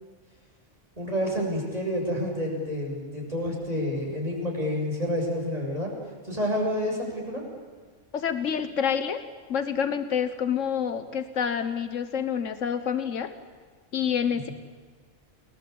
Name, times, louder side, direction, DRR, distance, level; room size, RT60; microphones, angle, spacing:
voice 1, 1.0-5.9 6.2-7.4 14.5-14.6, equal, 30° right, -1 dB, 7.7 m, -29 dB
voice 2, 8.1-9.2 9.5-13.3 13.9-14.5, left 7 dB, 85° left, 10 dB, 1.6 m, -27 dB
29.0 x 21.5 x 8.6 m, 1.5 s
omnidirectional pair, 1.3 m